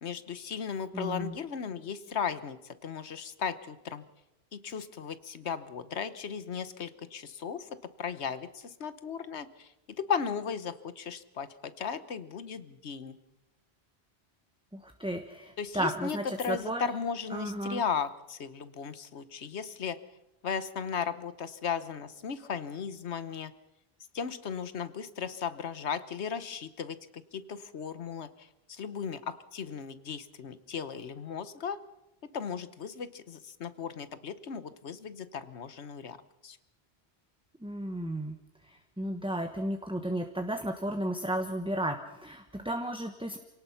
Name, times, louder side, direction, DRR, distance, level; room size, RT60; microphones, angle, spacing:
voice 1, 0.0-4.0 4.5-13.2 15.6-20.0 20.4-23.5 24.1-31.8 32.3-36.2 36.4-36.6, left 6 dB, 85° left, 14 dB, 1.3 m, -36 dB
voice 2, 0.9-1.3 14.7-16.9 17.3-17.8 37.6-38.4 38.6-43.4, right 1 dB, 5° right, 5 dB, 1.2 m, -34 dB
27.5 x 18.0 x 5.7 m, 0.92 s
omnidirectional pair, 1.1 m